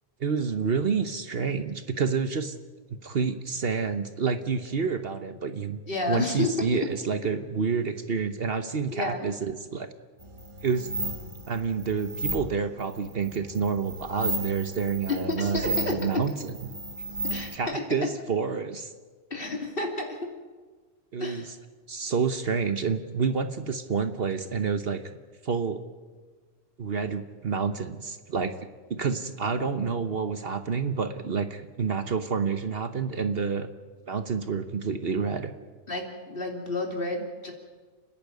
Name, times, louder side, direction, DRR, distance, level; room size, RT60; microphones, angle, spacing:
voice 1, 0.2-2.5 2.9-5.8 6.1-9.9 10.6-10.9 11.5-16.3 16.6-16.7 17.5-18.9 21.1-21.6 21.9-25.2 25.4-25.8 26.8-28.5 28.9-33.7 34.1-35.5, right 5 dB, 55° right, 9 dB, 1.2 m, -28 dB
voice 2, 5.9-6.5 8.9-9.3 15.1-16.2 17.2-17.8 19.3-20.2 21.2-21.5 29.6-30.1 35.9-37.5, left 2 dB, 50° left, 2 dB, 3.2 m, -31 dB
sound 1, 10.2-17.6, right 1 dB, 25° right, 1.6 m, -34 dB
30.0 x 10.5 x 9.4 m, 1.4 s
omnidirectional pair, 1.3 m